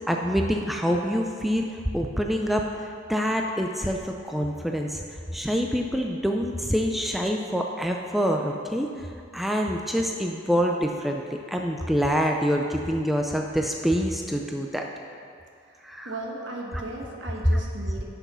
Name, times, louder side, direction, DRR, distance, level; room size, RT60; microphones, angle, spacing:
voice 1, 0.1-1.7 1.9-5.0 5.3-8.9 9.3-11.2 11.5-14.8 15.8-16.1 17.5-17.6, equal, ahead, 1 dB, 0.4 m, -26 dB
voice 2, 15.6-18.0, right 2 dB, 70° right, -1 dB, 1.4 m, -37 dB
10.0 x 6.1 x 5.5 m, 2.4 s
head